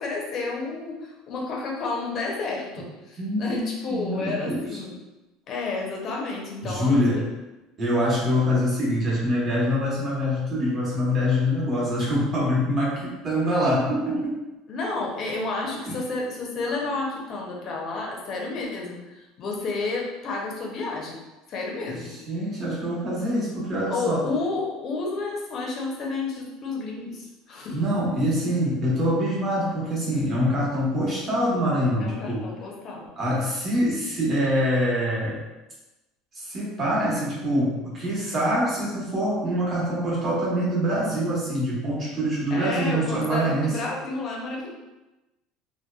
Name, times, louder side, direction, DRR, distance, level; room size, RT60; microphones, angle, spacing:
voice 1, 0.0-5.0 5.5-7.2 14.7-21.2 21.5-22.2 23.9-27.8 32.0-33.1 42.5-44.7, left 3 dB, 40° left, -1 dB, 0.6 m, -31 dB
voice 2, 3.2-3.6 3.9-4.6 6.6-7.3 7.8-14.3 15.9-16.0 22.3-24.2 27.7-32.4 33.2-35.4 36.3-43.8, equal, 35° right, -6 dB, 1.0 m, -24 dB
2.7 x 2.2 x 2.2 m, 1.1 s
cardioid pair, 135°, 0 cm